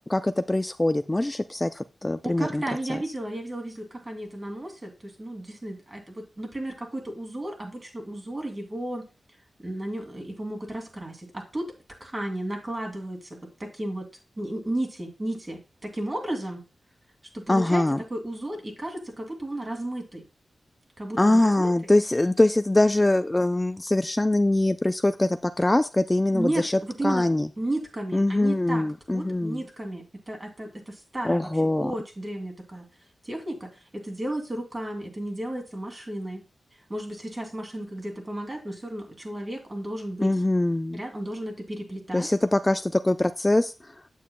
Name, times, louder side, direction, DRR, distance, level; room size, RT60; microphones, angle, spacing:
voice 1, 0.1-2.6 2.9-3.0 17.5-18.0 21.2-27.5 28.1-29.6 31.2-31.9 40.2-41.0 42.1-43.9, left 1 dB, 20° left, 0.3 m, -23 dB
voice 2, 2.2-9.1 9.6-11.7 12.0-14.1 14.4-16.6 17.3-20.2 21.0-21.9 26.3-27.2 27.6-28.9 29.1-31.5 31.8-32.9 33.2-36.4 36.9-40.4 40.9-42.3, right 1 dB, 35° right, 2.7 m, -33 dB
8.5 x 7.2 x 2.2 m
cardioid pair, 60°, 0 cm